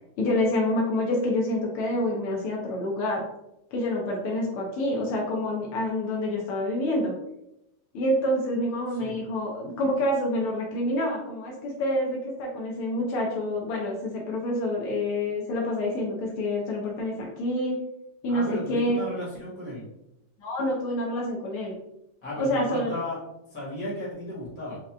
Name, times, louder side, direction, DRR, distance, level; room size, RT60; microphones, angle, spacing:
voice 1, 0.2-3.2 3.7-7.2 7.9-17.8 18.2-19.0 20.4-21.8 22.4-23.0, left 1 dB, 85° left, -2 dB, 1.7 m, -27 dB
voice 2, 18.3-19.9 22.2-23.2 23.5-24.8, left 1 dB, 50° left, -7 dB, 1.8 m, -34 dB
5.7 x 2.4 x 2.3 m, 0.85 s
omnidirectional pair, 2.4 m